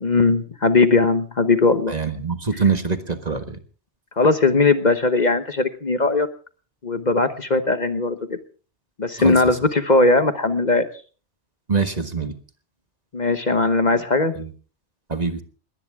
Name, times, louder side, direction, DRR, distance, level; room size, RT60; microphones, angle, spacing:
voice 1, 0.0-1.9 2.5-2.6 4.2-6.3 6.8-8.4 9.0-10.9 13.1-14.3, left 3 dB, 40° left, 10 dB, 1.1 m, -19 dB
voice 2, 1.9-3.6 9.2-9.4 11.7-12.3 14.4-14.5 15.1-15.4, right 4 dB, 35° right, 8 dB, 1.6 m, -24 dB
21.0 x 18.5 x 3.6 m, 0.38 s
omnidirectional pair, 1.2 m